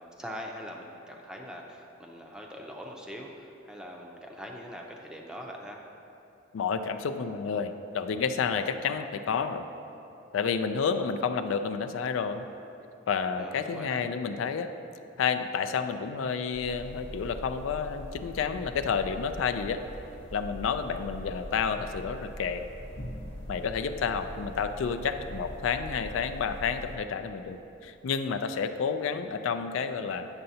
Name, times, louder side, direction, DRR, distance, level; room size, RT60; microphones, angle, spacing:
voice 1, 0.0-5.8 13.4-14.0, equal, 5° right, 0 dB, 0.5 m, -42 dB
voice 2, 6.5-9.6 10.3-12.4 13.1-14.7 15.2-19.8 20.3-22.6 23.5-30.3, left 6 dB, 80° left, 9 dB, 0.3 m, -30 dB
sound 1, 16.5-27.0, left 1 dB, 60° left, 0.8 m, -42 dB
8.9 x 6.6 x 2.7 m, 3.0 s
head